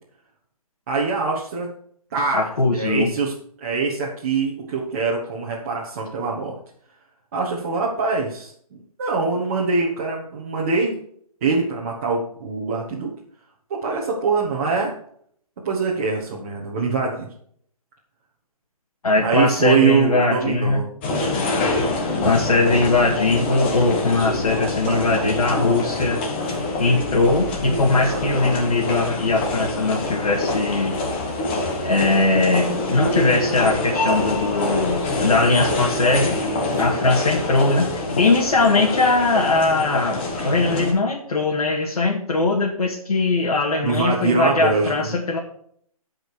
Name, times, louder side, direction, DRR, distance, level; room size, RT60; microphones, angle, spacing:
voice 1, 0.9-1.7 2.1-3.3 3.6-6.6 7.3-10.9 11.4-13.1 13.7-14.9 15.6-17.3 19.2-20.9 24.9-25.3 26.5-26.6 28.0-28.2 36.7-36.8 43.8-45.1, right 4 dB, 25° right, -4 dB, 1.3 m, -23 dB
voice 2, 2.3-3.1 19.0-20.8 22.2-26.2 26.8-30.9 31.8-36.4 36.8-45.4, left 3 dB, 75° left, -2 dB, 2.1 m, -20 dB
sound 1, 21.0-40.9, left 2 dB, 20° left, 1.1 m, -25 dB
15.0 x 5.2 x 4.7 m, 0.63 s
hypercardioid pair, 170°, 19 cm